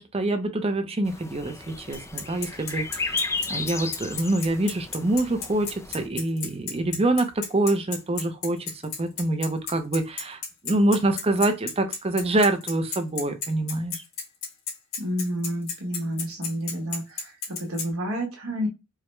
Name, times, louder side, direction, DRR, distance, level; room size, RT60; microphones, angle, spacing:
voice 1, 0.0-14.0, right 2 dB, 30° right, 0.6 m, -26 dB
sound 1, 1.0-6.1, left 3 dB, 15° left, 0.3 m, -34 dB
Bicycle, 1.9-17.9, left 6 dB, 85° left, 2.0 m, -32 dB
voice 2, 15.0-18.7, equal, 80° right, 1.5 m, -30 dB
4.8 x 2.2 x 3.2 m
head